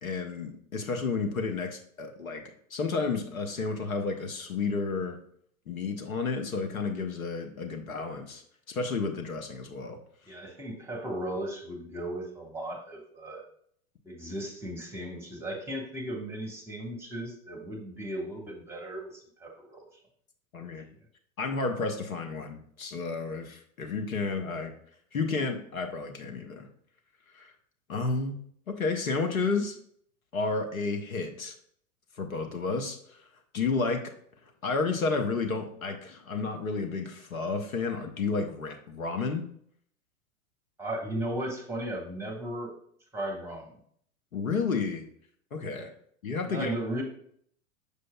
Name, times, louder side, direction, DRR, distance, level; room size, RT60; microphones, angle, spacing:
voice 1, 0.0-2.4 2.7-5.2 5.7-10.0 20.5-20.9 21.4-24.7 25.1-26.7 27.3-27.5 27.9-28.3 28.7-29.8 30.3-31.5 32.2-33.3 33.5-34.1 34.6-39.5 44.3-45.0 45.5-45.9 46.2-46.7, left 4 dB, 80° left, 5 dB, 1.0 m, -31 dB
voice 2, 10.3-13.4 14.0-19.9 40.8-42.7 43.1-43.8 45.7-45.9 46.5-47.0, right 1 dB, 5° right, 1 dB, 1.3 m, -36 dB
6.8 x 6.3 x 2.3 m, 0.64 s
figure-of-eight pair, 95°, 41 cm